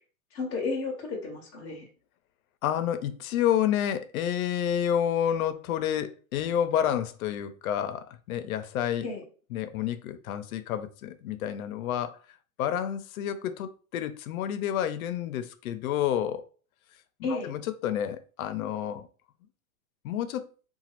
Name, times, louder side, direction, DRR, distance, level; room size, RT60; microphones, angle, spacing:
voice 1, 0.3-1.8 9.0-9.2 17.2-17.5, left 3 dB, 10° left, 0.4 m, -32 dB
voice 2, 2.6-9.0 9.5-12.2 12.6-16.4 17.2-19.1 20.0-20.5, left 10 dB, 80° left, 0.6 m, -29 dB
3.0 x 2.3 x 2.9 m
supercardioid pair, 165°, 42 cm